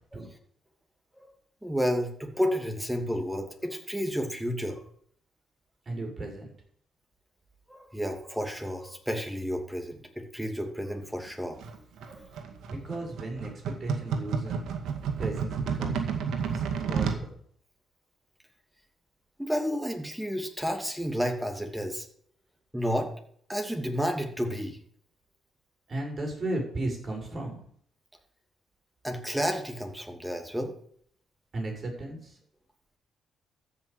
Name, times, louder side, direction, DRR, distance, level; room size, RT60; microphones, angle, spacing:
voice 1, 1.6-4.8 7.7-11.6 12.1-12.3 19.4-22.1 22.7-23.1 23.5-24.8 29.0-30.7, equal, 5° right, 4 dB, 2.5 m, -31 dB
voice 2, 5.9-6.5 12.7-14.6 15.2-16.0 16.5-17.4 25.9-27.6 31.5-32.4, right 2 dB, 40° right, 0 dB, 5.9 m, -35 dB
sound 1, 11.6-17.2, right 6 dB, 75° right, 2.0 m, -31 dB
13.5 x 6.0 x 8.5 m, 0.62 s
cardioid pair, 90°, 0 cm